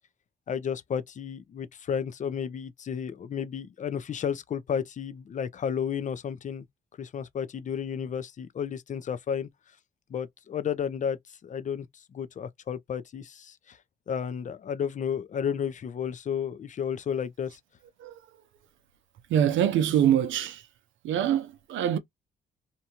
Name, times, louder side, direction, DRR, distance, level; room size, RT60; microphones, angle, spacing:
voice 1, 0.5-6.7 7.0-9.5 10.1-11.9 12.1-13.8 14.1-17.6, left 7 dB, 40° left, 0.5 m, -32 dB
voice 2, 19.3-20.6 21.0-22.0, right 10 dB, 75° right, 0.5 m, -24 dB
2.7 x 2.2 x 2.8 m
cardioid pair, 90°, 20 cm